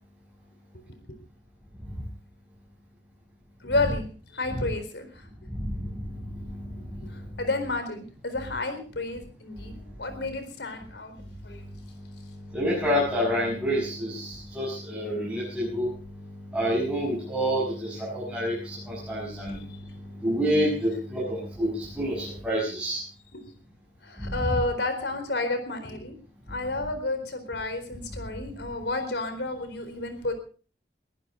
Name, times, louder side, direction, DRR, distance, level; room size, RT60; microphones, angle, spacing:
voice 1, 3.6-4.1 4.3-5.1 7.0-11.2 11.4-11.6 23.3-23.4 24.0-26.2 26.5-30.3, left 2 dB, 80° left, 8 dB, 4.2 m, -31 dB
voice 2, 12.5-15.9 16.5-19.6 20.2-23.0 24.2-24.3, equal, 5° right, -6 dB, 6.7 m, -28 dB
22.5 x 15.0 x 3.9 m, 0.39 s
head